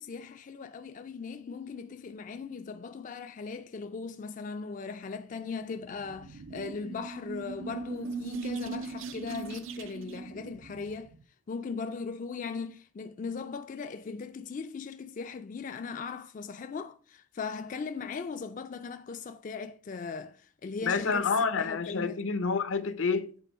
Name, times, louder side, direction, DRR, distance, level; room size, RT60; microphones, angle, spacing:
voice 1, 0.0-11.1 11.5-21.3 21.6-22.2, left 5 dB, 40° left, 0.3 m, -39 dB
sound 1, 5.8-11.2, right 4 dB, 85° right, 0.6 m, -39 dB
voice 2, 20.8-23.3, left 5 dB, 80° left, 0.7 m, -28 dB
8.3 x 3.6 x 4.6 m
head